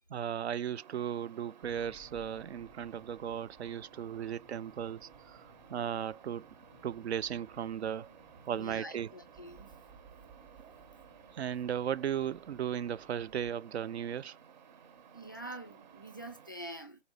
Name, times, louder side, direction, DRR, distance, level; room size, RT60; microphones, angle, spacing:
voice 1, 0.1-5.4 5.7-6.5 6.8-8.1 8.5-9.1 10.6-10.7 11.3-14.4, right 9 dB, 65° right, 0.5 m, -36 dB
sound 1, 0.7-16.5, right 7 dB, 40° right, 1.0 m, -57 dB
sound 2, 1.6-13.5, right 3 dB, 10° right, 0.8 m, -60 dB
voice 2, 8.5-9.8 15.1-17.0, right 1 dB, 20° left, 0.3 m, -46 dB
4.0 x 2.7 x 4.8 m
hypercardioid pair, 145°, 35 cm